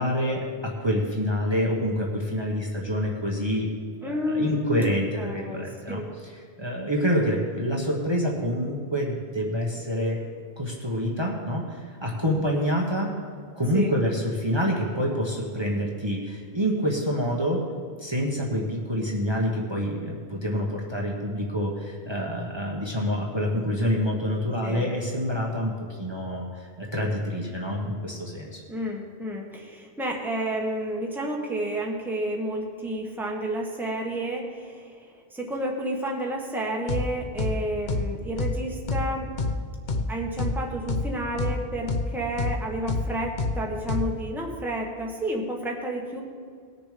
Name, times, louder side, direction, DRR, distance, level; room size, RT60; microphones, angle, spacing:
voice 1, 0.0-3.7 4.0-6.3 6.6-10.2 10.6-13.1 13.6-17.6 18.0-28.6, equal, 25° right, -2 dB, 1.3 m, -27 dB
voice 2, 4.0-6.0 13.7-13.9 24.6-24.9 28.7-39.3 40.1-46.2, right 1 dB, ahead, -1 dB, 1.4 m, -31 dB
sound 1, 36.9-37.1 37.4-37.6 37.9-38.1 38.4-38.6 38.9-39.1 39.4-39.5 39.9-40.1 40.4-40.6 40.9-41.1 41.4-41.6 41.9-42.1 42.4-42.6 42.9-43.1 43.4-43.5 43.9-44.1, left 3 dB, 50° left, 0.9 m, -26 dB
19.0 x 6.8 x 5.1 m, 2.1 s
omnidirectional pair, 1.1 m